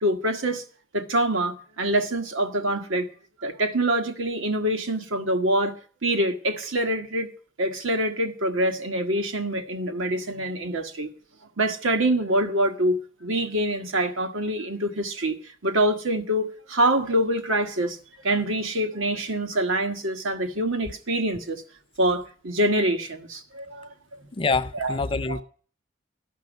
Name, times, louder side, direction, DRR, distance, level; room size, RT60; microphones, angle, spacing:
voice 1, 0.0-0.6 0.9-3.1 3.4-7.3 7.6-11.1 11.6-18.0 18.2-21.6 22.0-24.2 24.7-25.0 25.3-25.4, right 1 dB, 85° right, 1.5 m, -25 dB
voice 2, 24.4-25.4, left 3 dB, 25° left, 0.5 m, -25 dB
12.0 x 6.2 x 9.2 m
head